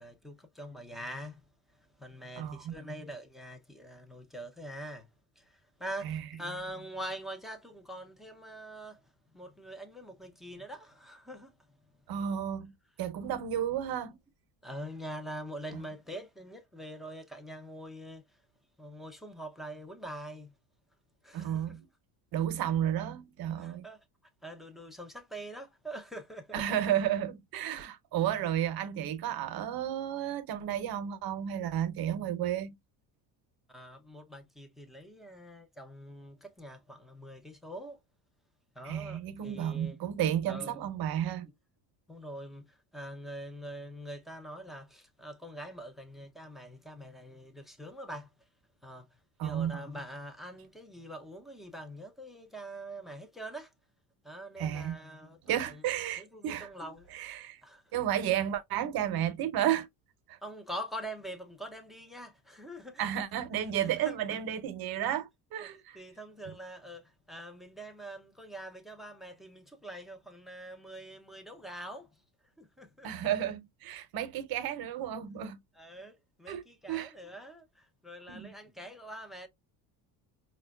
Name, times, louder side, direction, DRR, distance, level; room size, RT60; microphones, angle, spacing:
voice 1, 0.0-5.1 5.4-11.8 14.6-18.2 18.8-20.5 21.2-21.7 23.6-24.0 24.4-26.6 33.7-38.0 38.8-40.0 40.5-40.8 42.1-48.3 48.8-53.7 54.2-55.8 56.2-57.1 57.6-57.9 60.4-63.1 63.8-64.4 65.6-72.2 72.6-73.1 75.8-79.5, right 1 dB, ahead, 0.4 m, -44 dB
voice 2, 2.4-2.7 6.0-6.2 12.1-14.2 15.7-15.8 21.3-21.9 22.3-23.8 26.5-32.8 38.8-41.5 49.4-49.8 54.6-55.0 55.4-56.7 57.1-57.6 57.9-59.9 60.3-60.4 63.0-66.0 73.0-75.6 76.5-76.6 76.9-77.1 78.3-78.5, right 10 dB, 50° right, 0.7 m, -32 dB
4.8 x 2.2 x 2.2 m
cardioid pair, 130°, 46 cm